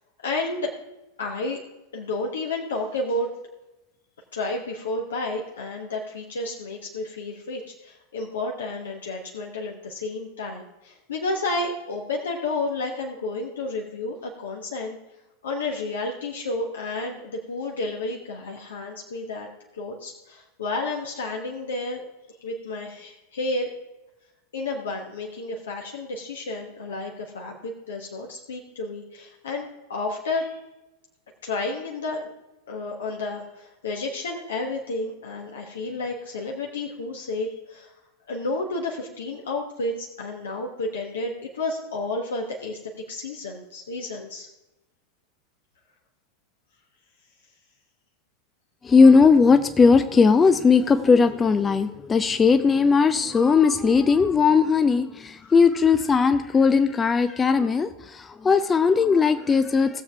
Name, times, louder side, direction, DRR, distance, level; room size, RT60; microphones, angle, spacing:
voice 1, 0.2-0.7 1.2-1.6 1.9-3.3 4.3-15.0 15.4-22.0 22.4-23.7 24.5-30.6 31.4-32.3 32.7-37.9 38.3-42.8 43.1-44.5, left 2 dB, 65° left, 1 dB, 1.2 m, -31 dB
voice 2, 48.8-60.0, left 5 dB, 15° left, 11 dB, 0.4 m, -18 dB
17.0 x 7.2 x 3.4 m, 1.0 s
figure-of-eight pair, 90°, 0 cm